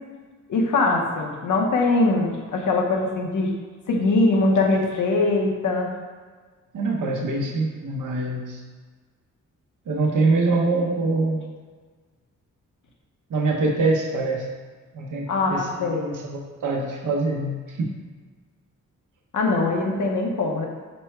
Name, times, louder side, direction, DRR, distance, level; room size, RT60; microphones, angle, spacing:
voice 1, 0.5-3.5 3.9-5.9 15.3-16.1 19.3-20.7, left 2 dB, 75° left, 0 dB, 0.8 m, -22 dB
voice 2, 6.7-8.6 9.9-11.4 13.3-14.5 14.9-16.0 16.2-17.9, right 3 dB, 75° right, -2 dB, 0.9 m, -24 dB
5.3 x 2.1 x 4.4 m, 1.5 s
wide cardioid pair, 120°, 31 cm